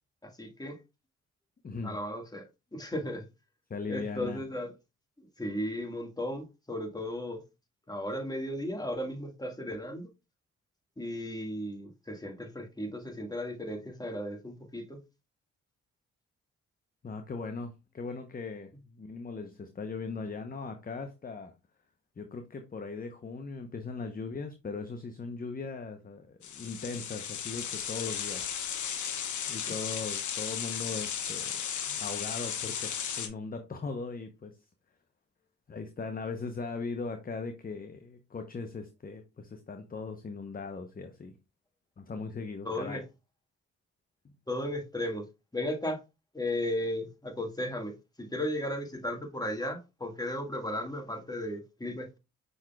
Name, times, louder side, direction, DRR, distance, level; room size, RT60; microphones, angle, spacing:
voice 1, 0.4-0.8 1.8-3.3 3.9-4.7 5.2-7.4 7.9-10.1 11.0-15.0 42.6-43.0 44.5-45.2 45.5-46.0 46.3-52.2, left 1 dB, 10° left, 1.6 m, -35 dB
voice 2, 1.6-2.0 3.7-4.4 17.0-21.5 22.2-28.4 29.5-31.6 31.9-34.6 35.7-41.3 42.0-43.0 44.2-44.3, left 4 dB, 30° left, 0.7 m, -39 dB
sound 1, 26.4-33.3, left 8 dB, 65° left, 1.0 m, -35 dB
6.1 x 3.9 x 2.2 m
supercardioid pair, 50°, 31 cm